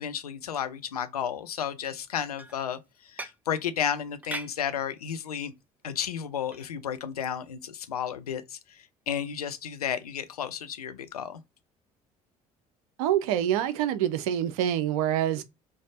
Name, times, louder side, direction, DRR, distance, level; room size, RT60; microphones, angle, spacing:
voice 1, 0.0-5.5 5.8-11.4, left 8 dB, 85° left, 0.4 m, -33 dB
sound 1, 2.0-3.5 4.0-4.6 5.3-5.5 6.4-6.7 7.2-7.4 7.8-7.9 9.3-9.4 10.1-10.3, right 2 dB, 10° right, 0.5 m, -41 dB
voice 2, 13.0-15.4, right 11 dB, 70° right, 0.5 m, -26 dB
3.2 x 2.5 x 3.6 m
figure-of-eight pair, 55°, 19 cm